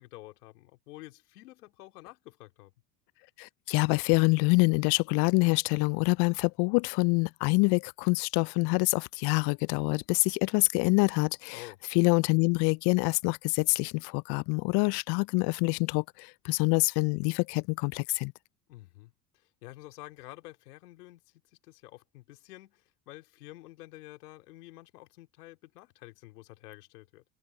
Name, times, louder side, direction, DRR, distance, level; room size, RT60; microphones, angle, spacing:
voice 1, 0.0-2.7 11.5-11.8 18.7-27.2, left 18 dB, 80° left, 3.0 m, -49 dB
voice 2, 3.4-11.6 11.9-18.3, left 30 dB, 60° left, 0.5 m, -26 dB
hypercardioid pair, 70°, 46 cm